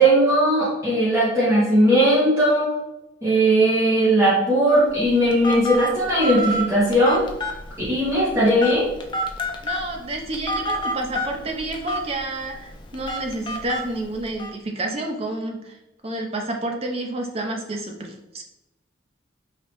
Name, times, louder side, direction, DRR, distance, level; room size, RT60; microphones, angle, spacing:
voice 1, 0.0-2.8 3.2-7.3 7.9-8.9, right 1 dB, 15° right, -10 dB, 1.1 m, -18 dB
Telephone, 4.7-14.5, equal, 25° left, 0.4 m, -30 dB
voice 2, 9.6-15.8 16.0-18.4, right 2 dB, 30° right, 2 dB, 0.6 m, -29 dB
4.9 x 2.8 x 3.0 m, 0.92 s
head